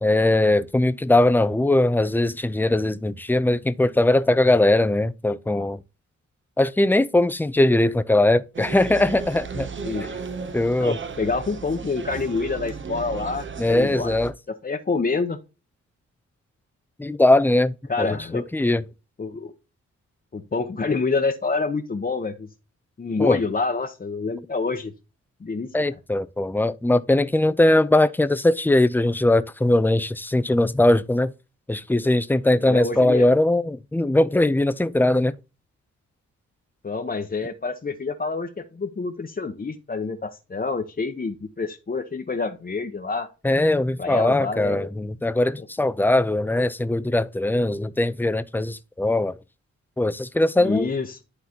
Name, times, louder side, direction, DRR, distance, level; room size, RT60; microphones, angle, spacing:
voice 1, 0.0-5.8 6.6-9.7 10.5-11.0 13.6-14.3 17.0-18.8 23.2-23.4 25.7-31.3 31.7-35.3 43.4-49.4 50.0-50.9, left 1 dB, 5° left, 0.5 m, -20 dB
sound 1, 8.5-14.3, right 5 dB, 40° right, 0.8 m, -35 dB
voice 2, 10.8-14.1 14.6-15.4 17.9-18.5 19.2-19.5 20.3-22.5 23.0-24.9 25.4-25.7 32.7-33.3 36.8-43.3 44.0-44.9 45.6-45.7 50.6-51.2, left 4 dB, 30° left, 0.9 m, -27 dB
11.5 x 4.0 x 2.9 m
cardioid pair, 70°, 31 cm